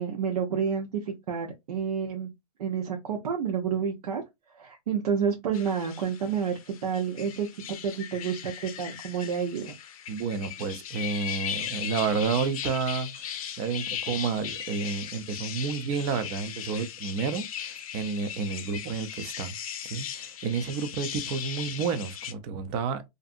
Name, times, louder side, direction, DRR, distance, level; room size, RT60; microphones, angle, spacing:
voice 1, 0.0-2.3 2.6-4.2 4.5-9.7, right 7 dB, 75° right, 0.7 m, -29 dB
sound 1, 5.5-22.3, left 9 dB, 65° left, 0.5 m, -38 dB
voice 2, 10.1-19.6 19.9-23.1, right 5 dB, 25° right, 0.3 m, -30 dB
2.5 x 2.5 x 2.4 m
hypercardioid pair, 145°, 20 cm